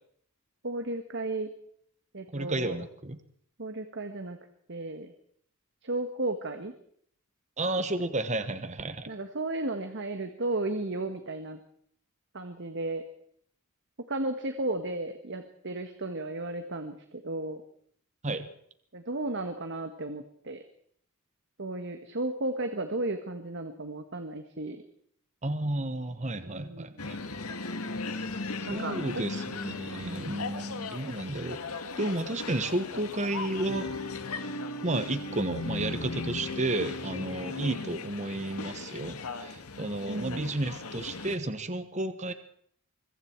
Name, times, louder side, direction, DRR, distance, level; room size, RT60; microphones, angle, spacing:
voice 1, 0.6-1.5 2.1-2.8 3.6-4.4 4.7-5.1 5.8-6.7 9.1-11.6 12.3-13.0 14.1-17.6 18.9-20.6 21.6-24.8 26.4-26.9 28.7-29.2 30.0-30.5 40.0-40.5, right 2 dB, 55° right, 8 dB, 1.5 m, -34 dB
voice 2, 2.3-3.2 7.6-9.1 18.2-18.5 25.4-27.2 28.6-31.6 32.0-33.9 34.8-42.3, right 2 dB, 35° right, 10 dB, 1.3 m, -32 dB
sound 1, 27.0-41.4, left 3 dB, 80° left, 1.9 m, -37 dB
25.5 x 22.5 x 4.6 m, 0.64 s
head